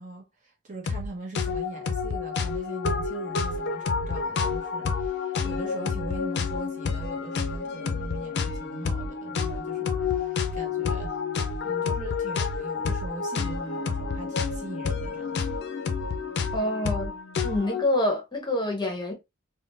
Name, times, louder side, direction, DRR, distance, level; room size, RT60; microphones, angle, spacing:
voice 1, 0.0-11.3 11.6-15.4, right 2 dB, 35° right, 0.9 m, -41 dB
sound 1, 0.9-1.1 1.3-17.8, left 5 dB, 55° left, 0.4 m, -29 dB
voice 2, 16.5-17.1 17.4-19.1, left 1 dB, 20° left, 0.8 m, -26 dB
3.5 x 2.1 x 2.4 m
head